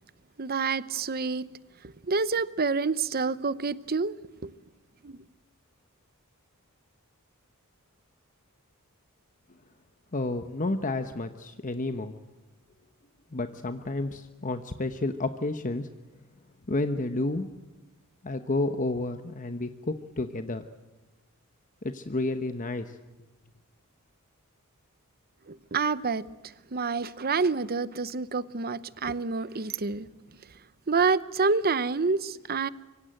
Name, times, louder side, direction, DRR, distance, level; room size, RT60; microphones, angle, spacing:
voice 1, 0.4-1.5 2.1-4.1 4.4-4.5 5.0-5.2 25.5-26.2 26.7-30.1 30.9-32.7, right 4 dB, 45° right, 0.9 m, -27 dB
voice 2, 10.1-12.1 13.3-15.9 16.7-17.5 18.2-20.6 21.8-23.0, left 2 dB, 35° left, 1.0 m, -30 dB
25.5 x 24.5 x 7.8 m
head